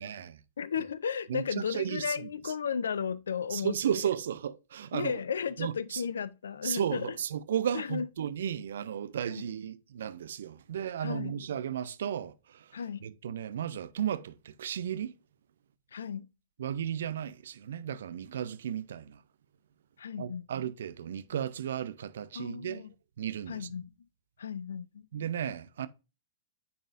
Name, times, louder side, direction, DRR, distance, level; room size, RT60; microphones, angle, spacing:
voice 1, 0.0-0.4 1.3-2.5 3.5-5.1 5.6-6.0 6.6-15.1 16.6-19.2 20.2-22.8 23.2-23.7 25.1-25.9, right 9 dB, 60° right, 0.5 m, -34 dB
voice 2, 0.6-3.8 4.9-7.2 7.7-8.1 11.0-11.4 12.7-13.0 15.9-16.3 20.0-20.5 22.3-22.9 23.5-23.9 24.4-25.1, left 7 dB, 70° left, 0.4 m, -34 dB
9.3 x 4.0 x 2.5 m
figure-of-eight pair, 100°, 0 cm